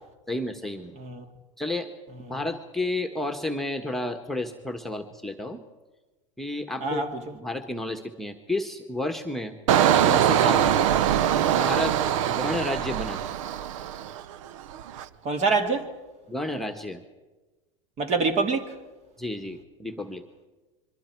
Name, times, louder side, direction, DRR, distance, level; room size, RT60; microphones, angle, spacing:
voice 1, 0.3-1.0 1.6-1.9 2.3-5.6 6.4-7.0 7.3-9.6 10.0-10.8 11.6-12.0 12.3-13.3 16.3-17.0 19.2-20.2, left 1 dB, ahead, 1.5 m, -31 dB
Engine, 9.7-14.3 14.7-15.0, right 10 dB, 75° right, 0.8 m, -22 dB
voice 2, 15.2-15.9 18.0-18.8, right 4 dB, 45° right, 2.8 m, -25 dB
26.0 x 23.0 x 4.7 m
hypercardioid pair, 105°, 17 cm